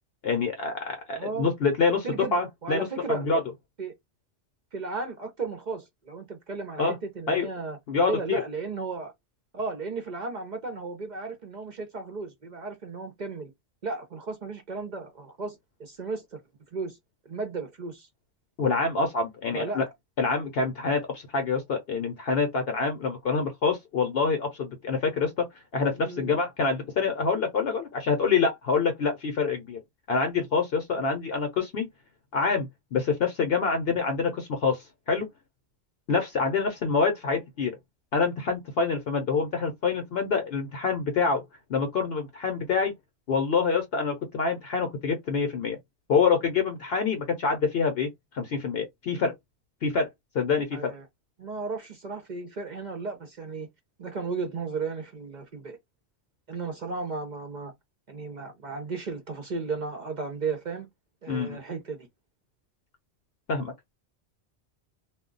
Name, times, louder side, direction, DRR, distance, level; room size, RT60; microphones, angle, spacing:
voice 1, 0.2-3.4 6.8-7.0 7.3-7.5 7.9-8.4 18.6-19.8 20.2-25.5 25.7-29.8 30.1-31.9 32.3-35.3 36.1-37.7 38.1-41.4 41.7-42.9 43.3-45.8 46.1-48.1 48.3-49.3 49.8-50.1 50.3-50.9 61.3-61.6 63.5-63.9, left 5 dB, 65° left, 0.8 m, -26 dB
voice 2, 1.2-1.5 2.0-2.4 2.6-3.2 3.8-3.9 4.7-7.8 8.1-9.1 9.5-13.5 13.8-16.4 16.7-17.0 17.3-18.1 19.5-19.8 25.9-26.3 50.7-51.1 51.4-53.7 54.0-55.8 56.5-57.7 58.1-60.9 61.2-62.1, right 4 dB, 50° right, 0.7 m, -34 dB
2.3 x 2.1 x 3.7 m
omnidirectional pair, 1.1 m